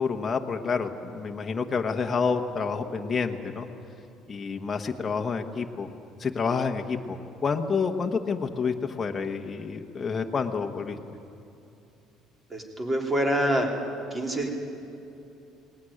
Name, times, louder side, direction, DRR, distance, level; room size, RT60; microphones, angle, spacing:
voice 1, 0.0-3.7 4.3-5.9 6.2-11.0, left 5 dB, 25° left, 3 dB, 1.2 m, -29 dB
voice 2, 12.5-13.7 14.1-14.5, right 1 dB, 20° right, 2 dB, 3.3 m, -26 dB
19.5 x 19.0 x 10.0 m, 2.7 s
cardioid pair, 125°, 0 cm